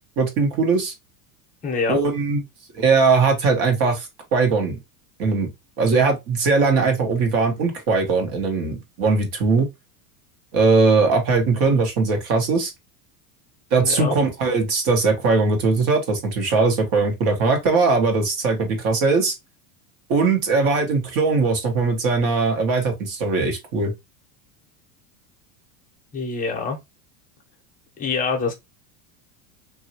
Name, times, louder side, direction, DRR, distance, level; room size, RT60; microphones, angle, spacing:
voice 1, 0.2-0.9 1.9-2.4 2.7-4.8 5.2-5.5 5.8-9.7 10.5-12.7 13.7-19.3 20.1-23.9, right 4 dB, 45° right, 1.2 m, -20 dB
voice 2, 1.6-2.0 13.8-14.1 26.1-26.8 28.0-28.5, left 4 dB, 20° left, 0.7 m, -25 dB
3.0 x 2.7 x 2.8 m
supercardioid pair, 140°, 47 cm